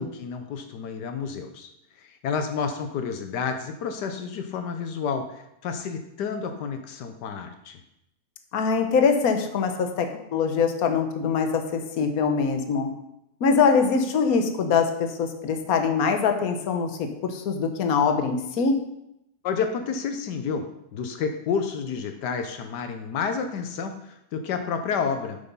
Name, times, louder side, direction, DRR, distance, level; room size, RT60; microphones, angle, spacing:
voice 1, 0.0-1.7 2.0-7.8 19.4-20.6 20.9-25.4, left 6 dB, 85° left, 7 dB, 1.4 m, -30 dB
voice 2, 8.5-12.9 13.4-18.8, left 5 dB, 65° left, 6 dB, 1.4 m, -23 dB
7.9 x 7.0 x 5.5 m, 0.82 s
omnidirectional pair, 1.8 m